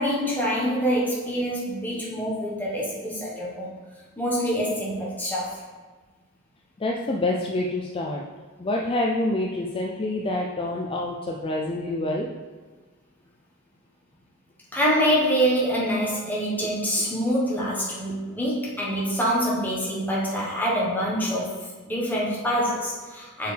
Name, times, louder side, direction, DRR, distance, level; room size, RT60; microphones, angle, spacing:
voice 1, 0.0-3.7 4.2-5.6 14.7-23.5, equal, 10° left, -6 dB, 1.2 m, -25 dB
voice 2, 6.8-8.2 8.6-12.3, left 2 dB, 25° left, -2 dB, 0.4 m, -27 dB
6.5 x 4.5 x 3.3 m, 1.4 s
head